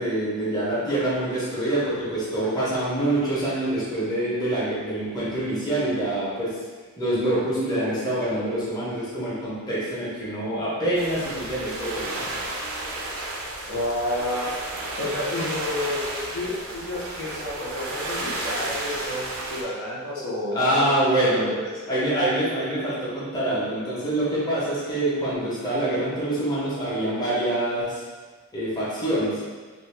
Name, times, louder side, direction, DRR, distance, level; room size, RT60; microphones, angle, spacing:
voice 1, 0.0-6.5 7.0-12.2 20.5-21.5 21.9-28.0 28.5-29.4, right 1 dB, 20° left, -9 dB, 0.8 m, -25 dB
sound 1, 11.0-19.6, right 1 dB, 70° right, 0.5 m, -32 dB
voice 2, 13.7-20.9 21.4-21.6, left 1 dB, 65° left, -6 dB, 0.7 m, -30 dB
2.7 x 2.6 x 3.2 m, 1.4 s
head